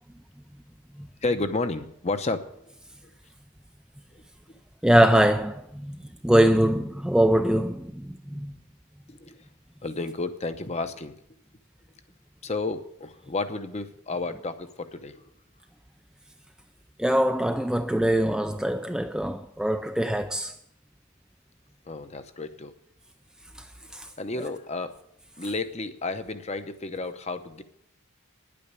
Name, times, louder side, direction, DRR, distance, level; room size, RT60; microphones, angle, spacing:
voice 1, 1.2-2.5 9.1-9.5 9.8-11.1 12.4-15.2 21.9-22.7 24.2-25.0 25.4-27.6, left 3 dB, 30° left, 0.8 m, -31 dB
voice 2, 4.8-8.5 17.0-20.6 23.6-23.7 23.9-24.1, right 1 dB, 5° right, 0.4 m, -23 dB
9.9 x 8.7 x 8.2 m
head